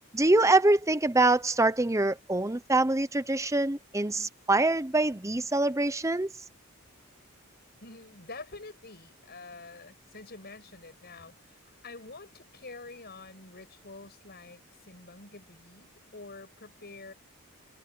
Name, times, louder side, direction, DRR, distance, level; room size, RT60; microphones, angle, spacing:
voice 1, 0.1-6.3, right 2 dB, 15° right, 0.8 m, -24 dB
voice 2, 7.8-17.1, left 3 dB, 45° left, 6.9 m, -47 dB
head